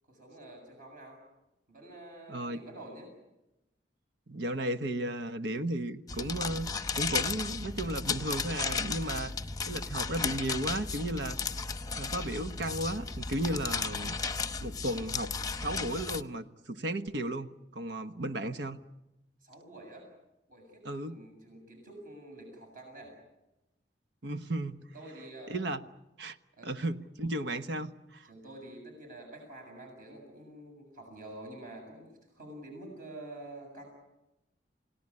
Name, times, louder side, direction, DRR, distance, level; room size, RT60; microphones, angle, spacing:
voice 1, 0.1-1.2 1.7-3.1 19.4-20.1 20.5-23.2 24.9-25.8 26.5-26.7 28.2-33.8, right 1 dB, 50° right, 2 dB, 7.3 m, -48 dB
voice 2, 2.3-2.6 4.3-6.7 6.9-9.3 9.7-11.6 12.0-14.2 14.6-15.3 15.6-18.8 20.8-21.2 24.2-24.8 25.5-25.8 26.2-26.4 26.6-28.3, right 1 dB, 85° right, 9 dB, 1.2 m, -34 dB
sound 1, 6.1-16.2, left 5 dB, 20° left, 0.8 m, -34 dB
29.0 x 18.0 x 9.9 m, 0.98 s
head